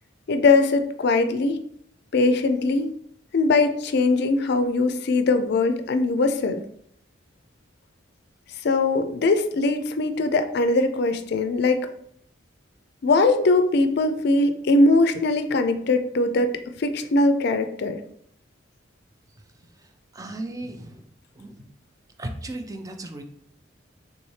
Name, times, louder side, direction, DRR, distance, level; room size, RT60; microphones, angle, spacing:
voice 1, 0.3-1.6 2.1-2.9 3.3-6.6 8.6-11.9 13.0-16.5 16.8-18.0, left 3 dB, 55° left, 8 dB, 0.4 m, -21 dB
voice 2, 20.1-21.0 21.4-21.6 22.2-23.2, right 1 dB, 20° right, 6 dB, 0.4 m, -35 dB
4.1 x 3.5 x 3.2 m, 0.69 s
head